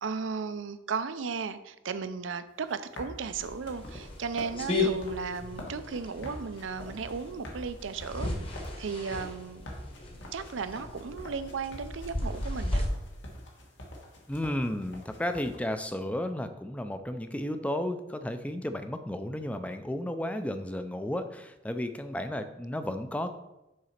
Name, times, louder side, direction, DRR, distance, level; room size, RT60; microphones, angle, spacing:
voice 1, 0.0-9.7 10.3-12.9, right 5 dB, 80° right, 12 dB, 0.5 m, -35 dB
sound 1, 2.5-15.6, left 1 dB, 70° left, 1.5 m, -47 dB
sound 2, 3.2-12.8, left 2 dB, 30° left, 1.1 m, -35 dB
voice 2, 14.3-23.3, left 1 dB, 5° left, 8 dB, 0.4 m, -33 dB
6.5 x 4.1 x 5.8 m, 0.95 s
head